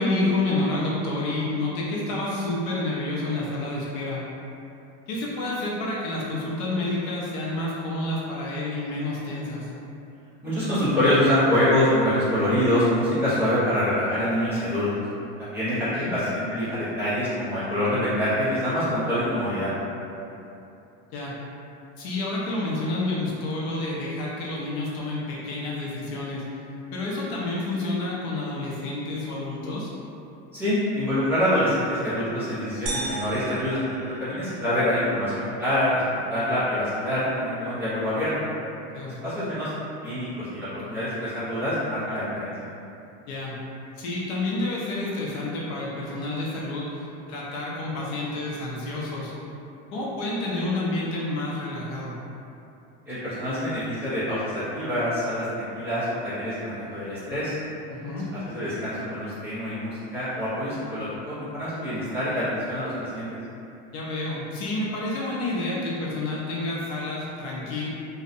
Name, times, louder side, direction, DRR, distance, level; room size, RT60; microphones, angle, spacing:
voice 1, 0.0-4.2 5.1-9.7 15.9-16.1 21.1-21.4 22.0-26.4 26.9-29.9 38.9-39.2 43.3-43.5 44.0-46.9 47.3-49.3 49.9-52.1 57.9-58.3 63.9-67.9, left 2 dB, 50° left, -5 dB, 0.5 m, -29 dB
voice 2, 10.4-15.0 15.4-19.7 30.5-38.3 39.2-39.7 40.0-42.7 53.1-57.6 58.4-63.4, left 1 dB, 5° right, -15 dB, 0.4 m, -25 dB
sound 1, 32.9-34.8, right 2 dB, 90° right, 0.6 m, -35 dB
2.6 x 2.0 x 2.4 m, 2.8 s
cardioid pair, 175°, 29 cm